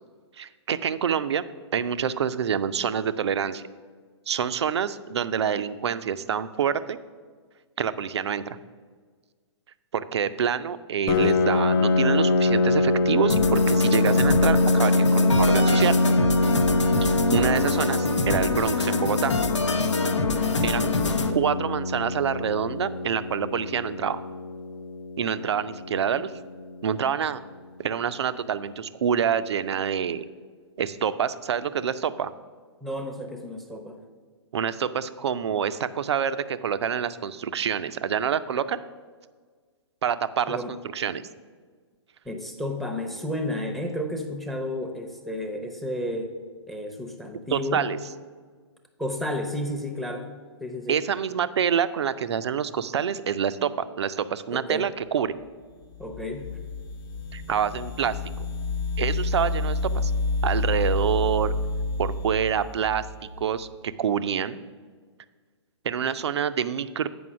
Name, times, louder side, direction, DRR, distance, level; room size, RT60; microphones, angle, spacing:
voice 1, 0.4-1.4 1.7-3.6 4.3-7.0 7.8-8.6 9.9-16.0 17.3-19.3 20.6-20.9 21.3-24.2 25.2-26.3 26.8-27.4 27.8-30.2 30.8-32.3 34.5-38.8 40.0-40.6 40.9-41.2 47.5-48.0 50.9-53.7 54.0-55.3 57.3-58.2 59.0-60.1 60.4-61.5 62.0-63.1 63.4-64.6 65.8-67.1, right 8 dB, 70° right, 13 dB, 0.5 m, -26 dB
Piano, 11.1-26.5, left 2 dB, 25° left, 0.4 m, -24 dB
sound 1, 13.3-21.3, left 3 dB, 90° left, 0.7 m, -26 dB
voice 2, 32.8-34.0 40.5-40.7 42.2-46.3 46.7-47.9 49.0-50.3 50.6-51.0 54.5-54.9 56.0-56.5, left 1 dB, ahead, 5 dB, 0.7 m, -32 dB
sound 2, 55.9-63.5, left 2 dB, 50° left, 0.9 m, -29 dB
7.8 x 5.3 x 6.2 m, 1.6 s
hypercardioid pair, 125°, 15 cm